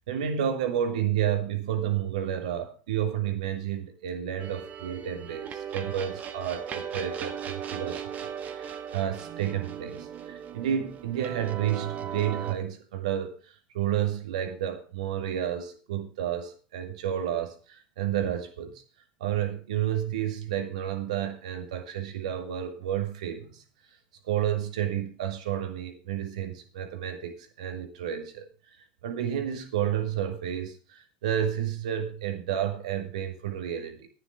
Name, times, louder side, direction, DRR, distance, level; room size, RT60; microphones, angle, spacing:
voice 1, 0.1-18.8 19.2-23.6 24.2-28.5 29.0-34.1, right 10 dB, 80° right, 7 dB, 2.0 m, -31 dB
sound 1, 4.4-12.5, right 8 dB, 45° right, 1.8 m, -37 dB
11.0 x 9.8 x 4.9 m, 0.37 s
hypercardioid pair, 80°, 4 cm